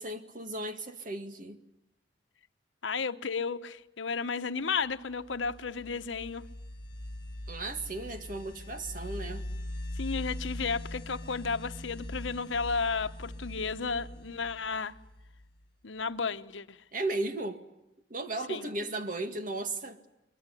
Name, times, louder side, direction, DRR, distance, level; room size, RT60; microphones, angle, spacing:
voice 1, 0.0-1.6 7.5-9.4 16.9-17.6 18.1-20.0, right 2 dB, 45° right, 1.9 m, -35 dB
voice 2, 2.8-6.4 10.0-15.0 15.8-16.8 18.5-18.7, left 5 dB, 80° left, 1.0 m, -33 dB
sound 1, 5.1-15.6, left 1 dB, 25° left, 4.4 m, -41 dB
23.0 x 23.0 x 10.0 m
head